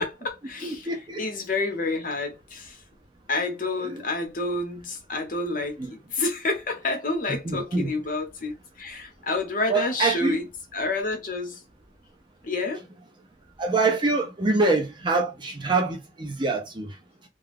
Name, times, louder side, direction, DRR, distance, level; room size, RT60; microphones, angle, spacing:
voice 1, 0.0-2.8 3.3-11.6 12.4-12.8, left 2 dB, 45° left, 0.8 m, -29 dB
voice 2, 0.6-1.2 3.8-4.0 5.8-5.9 7.3-7.9 9.7-10.4 13.6-16.9, right 3 dB, 25° right, 0.5 m, -25 dB
2.4 x 2.3 x 3.3 m
head